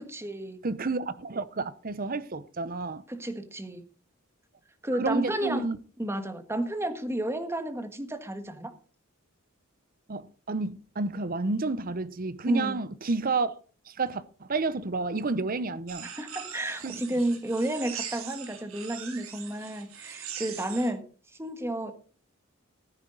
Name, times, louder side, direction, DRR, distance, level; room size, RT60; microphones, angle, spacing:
voice 1, 0.0-0.6 3.1-3.8 4.8-5.7 6.0-8.7 12.5-12.8 16.1-21.0 21.4-21.9, right 1 dB, 10° right, 1.4 m, -31 dB
voice 2, 0.6-3.0 4.9-5.8 10.1-13.6 13.9-16.1 16.8-16.9, right 3 dB, 45° right, 0.7 m, -30 dB
sound 1, 15.9-20.9, right 8 dB, 80° right, 2.7 m, -41 dB
14.0 x 9.8 x 3.9 m
head